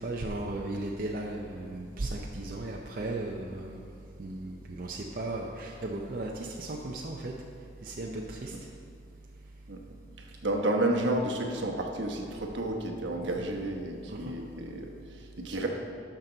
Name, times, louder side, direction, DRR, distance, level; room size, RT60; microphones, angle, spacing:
voice 1, 0.0-3.8 4.2-7.3 7.8-8.5 14.1-14.2, right 2 dB, 45° right, -1 dB, 0.6 m, -36 dB
voice 2, 10.2-15.7, right 1 dB, 70° right, 1 dB, 1.1 m, -31 dB
12.5 x 5.9 x 3.9 m, 2.3 s
head